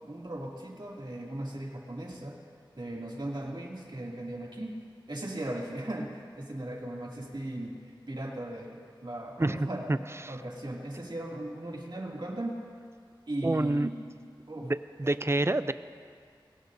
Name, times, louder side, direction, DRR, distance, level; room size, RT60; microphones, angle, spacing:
voice 1, 0.0-2.4 2.7-4.7 5.1-6.1 6.4-7.8 8.1-9.9 10.3-12.6 13.3-13.9 14.5-14.7 15.0-15.1, right 1 dB, 65° right, -3 dB, 2.5 m, -37 dB
voice 2, 9.4-10.0 10.2-10.3 13.4-13.9 14.6-15.7, right 2 dB, 30° right, 13 dB, 0.5 m, -28 dB
22.0 x 18.5 x 2.7 m, 2.1 s
wide cardioid pair, 55°, 9 cm